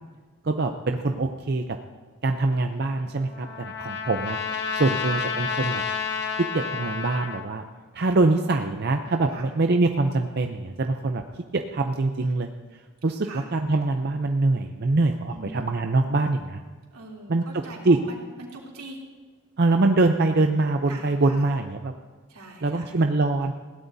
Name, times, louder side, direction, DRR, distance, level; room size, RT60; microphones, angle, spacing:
voice 1, 0.4-1.6 2.2-4.4 4.7-5.8 6.5-7.6 7.9-11.2 11.5-12.5 13.0-16.6 17.3-17.4 17.8-18.0 19.6-21.9 22.6-23.5, right 2 dB, 45° right, 5 dB, 0.5 m, -23 dB
Trumpet, 2.8-7.5, left 5 dB, 50° left, 0.9 m, -30 dB
voice 2, 15.3-15.7 16.9-19.0 20.9-21.5 22.3-23.0, right 2 dB, 85° right, -2 dB, 3.1 m, -42 dB
20.5 x 16.5 x 2.7 m, 1.4 s
head